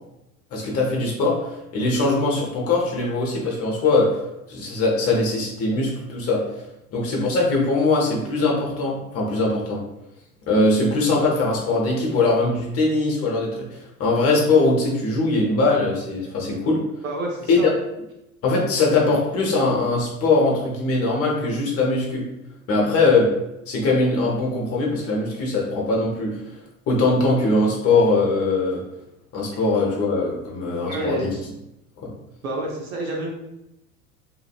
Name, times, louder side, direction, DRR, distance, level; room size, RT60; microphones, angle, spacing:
voice 1, 0.5-4.2 4.5-6.4 6.9-9.8 10.5-13.7 14.0-16.8 17.5-17.6 18.4-22.3 22.7-23.3 23.7-26.4 26.9-28.8 29.3-31.3 32.0-32.1, left 3 dB, 35° left, -3 dB, 0.8 m, -21 dB
voice 2, 17.0-17.7 30.8-31.3 32.4-33.3, right 1 dB, 70° right, -1 dB, 0.8 m, -28 dB
2.9 x 2.5 x 2.3 m, 0.90 s
figure-of-eight pair, 75°, 44 cm